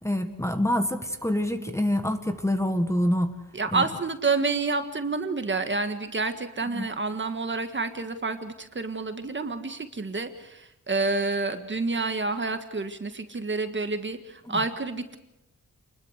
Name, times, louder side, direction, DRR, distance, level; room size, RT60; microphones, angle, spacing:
voice 1, 0.0-3.3 3.7-3.8 6.7-6.9 14.5-14.6, left 1 dB, 10° left, 7 dB, 1.7 m, -26 dB
voice 2, 3.5-15.2, right 3 dB, 35° right, 8 dB, 1.7 m, -29 dB
27.5 x 21.0 x 6.6 m, 0.88 s
wide cardioid pair, 125°, 33 cm